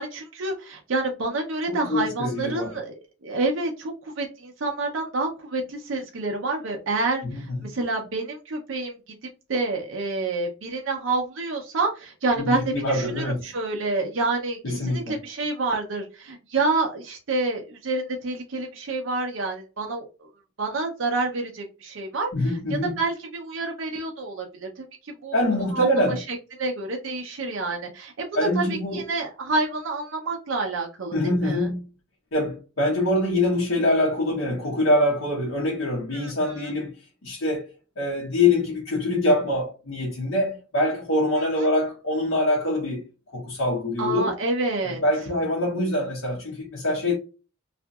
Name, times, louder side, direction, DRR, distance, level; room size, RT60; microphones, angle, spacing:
voice 1, 0.0-9.0 9.5-20.1 20.6-22.3 22.7-25.4 25.7-31.7 36.1-36.5 41.6-41.7 44.0-45.0, right 3 dB, 70° right, 0.6 m, -28 dB
voice 2, 1.7-2.8 7.2-7.7 12.4-13.4 14.6-15.2 22.3-23.0 25.3-26.2 28.4-29.1 31.1-31.8 32.3-36.9 37.2-37.7 38.0-43.0 43.3-44.3 44.8-47.2, left 1 dB, 75° left, 0.9 m, -24 dB
2.7 x 2.4 x 2.2 m
head